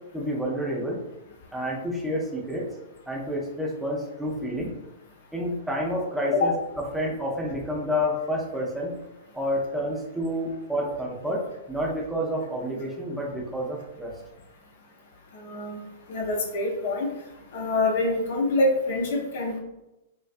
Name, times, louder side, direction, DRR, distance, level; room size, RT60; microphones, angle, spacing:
voice 1, 0.1-1.0 1.5-2.7 3.1-4.7 5.3-6.5 6.9-9.0 9.3-14.1, equal, 5° right, -4 dB, 0.6 m, -29 dB
voice 2, 15.3-15.8 16.1-17.1 17.5-19.6, left 2 dB, 60° left, 0 dB, 0.6 m, -25 dB
2.4 x 2.2 x 2.4 m, 0.94 s
figure-of-eight pair, 105°, 0 cm